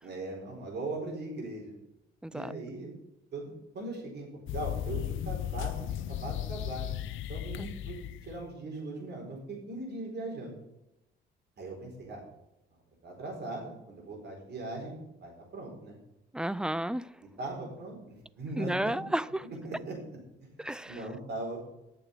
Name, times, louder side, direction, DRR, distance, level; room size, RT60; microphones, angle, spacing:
voice 1, 0.0-1.7 2.3-2.9 3.3-6.9 7.3-10.5 11.6-12.2 13.0-16.0 17.4-18.0 18.4-18.9 19.6-20.0 20.9-21.6, right 2 dB, 55° right, 4.3 m, -39 dB
voice 2, 2.2-2.5 7.6-7.7 16.3-17.2 18.6-19.5 20.6-21.1, right 1 dB, 5° right, 0.3 m, -32 dB
sound 1, 4.5-8.5, left 12 dB, 80° left, 0.6 m, -36 dB
8.8 x 6.8 x 8.0 m
cardioid pair, 90°, 20 cm